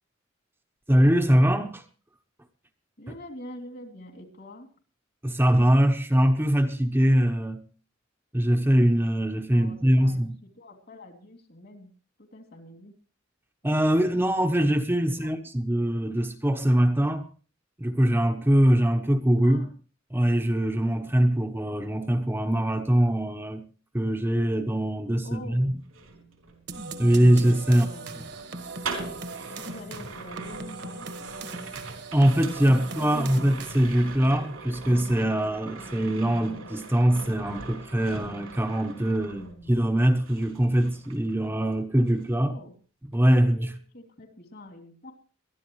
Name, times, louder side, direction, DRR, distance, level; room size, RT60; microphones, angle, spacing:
voice 1, 0.9-1.8 5.2-7.6 8.3-10.4 13.6-17.3 17.8-19.7 20.1-23.6 23.9-25.7 27.0-27.9 32.1-39.4 39.7-42.5 43.1-43.8, right 1 dB, 10° right, 1.0 m, -22 dB
voice 2, 3.0-4.7 9.5-11.9 12.2-13.0 15.1-15.3 19.4-19.7 25.2-25.8 27.6-28.3 29.6-31.7 32.9-33.5 39.3-39.8 42.4-42.7 43.2-45.1, left 1 dB, 55° left, 2.8 m, -45 dB
sound 1, 25.8-39.9 40.2-41.7 42.0-42.3, right 3 dB, 90° right, 3.9 m, -41 dB
sound 2, 26.7-34.1, right 3 dB, 55° right, 1.5 m, -39 dB
22.5 x 12.5 x 3.1 m
head